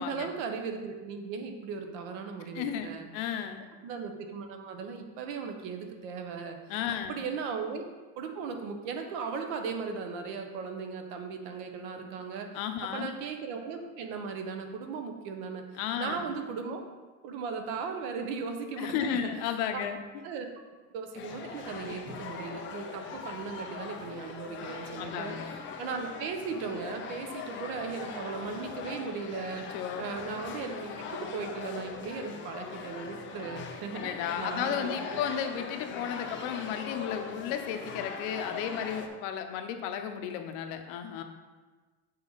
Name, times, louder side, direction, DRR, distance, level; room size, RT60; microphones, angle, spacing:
voice 1, 0.0-3.1 3.8-6.6 7.1-7.8 8.2-12.5 12.8-15.7 16.0-16.8 17.2-19.2 19.7-19.8 20.2-20.5 20.9-25.4 25.8-35.2, right 5 dB, 85° right, 5 dB, 1.1 m, -37 dB
voice 2, 2.5-3.6 6.7-7.2 12.5-13.1 15.8-16.3 18.8-20.0 25.0-25.6 29.7-30.1 33.9-41.2, left 8 dB, 80° left, 6 dB, 0.9 m, -34 dB
sound 1, 21.1-39.1, left 6 dB, 30° left, 0.7 m, -41 dB
7.8 x 5.6 x 4.1 m, 1.3 s
cardioid pair, 175°, 37 cm